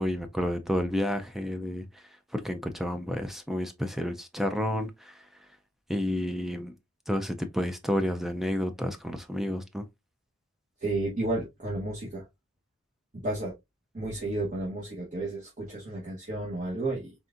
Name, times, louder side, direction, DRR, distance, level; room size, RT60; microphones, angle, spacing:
voice 1, 0.0-2.0 2.3-5.3 5.9-6.7 7.1-9.9, equal, ahead, 0.4 m, -30 dB
voice 2, 10.8-12.3 13.1-13.5 13.9-17.1, right 2 dB, 35° right, 1.1 m, -32 dB
4.2 x 3.5 x 2.5 m
head